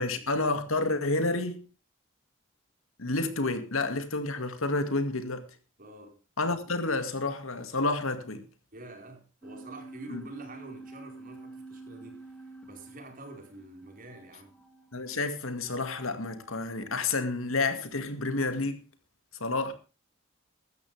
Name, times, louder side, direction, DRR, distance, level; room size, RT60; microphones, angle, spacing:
voice 1, 0.0-1.6 3.0-5.5 6.4-8.5 10.1-10.2 14.9-18.8 19.4-19.7, left 3 dB, 80° left, 2.2 m, -30 dB
voice 2, 5.8-6.2 8.7-14.6, right 2 dB, 40° right, 4.8 m, -47 dB
sound 1, 9.4-16.9, right 3 dB, 5° left, 2.3 m, -49 dB
16.0 x 13.0 x 3.5 m
head